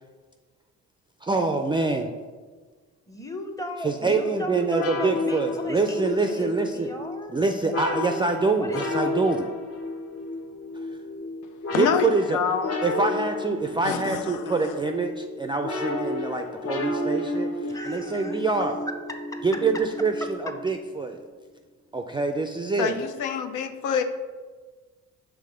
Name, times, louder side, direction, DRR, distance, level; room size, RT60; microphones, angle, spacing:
voice 1, 1.2-2.1 3.8-6.9 7.3-9.5 10.7-10.9 11.8-12.4 12.8-18.7 19.4-21.2 21.9-23.0, right 3 dB, 15° right, 5 dB, 0.3 m, -25 dB
voice 2, 3.1-7.5 8.5-9.0 17.6-18.4, left 1 dB, 10° left, 4 dB, 0.7 m, -36 dB
sound 1, 4.7-21.0, left 2 dB, 55° left, 1.0 m, -32 dB
voice 3, 11.7-12.8 13.8-14.7 22.8-24.0, left 7 dB, 90° left, 8 dB, 0.5 m, -27 dB
5.7 x 3.5 x 4.9 m, 1.4 s
cardioid pair, 90°, 30 cm